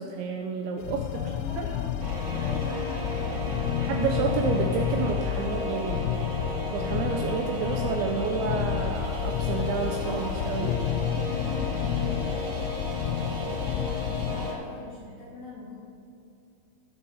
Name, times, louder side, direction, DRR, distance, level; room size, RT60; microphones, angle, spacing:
voice 1, 0.0-1.1 1.6-1.7 3.8-6.2 6.7-10.7, right 5 dB, 85° right, 3 dB, 2.7 m, -30 dB
sound 1, 0.8-14.5, left 10 dB, 90° left, 2.6 m, -30 dB
voice 2, 1.1-4.5 10.0-12.5 13.2-15.8, left 1 dB, 60° left, -5 dB, 2.4 m, -41 dB
sound 2, 2.0-14.5, equal, 60° right, 2.8 m, -35 dB
17.5 x 6.6 x 4.2 m, 2.6 s
omnidirectional pair, 5.9 m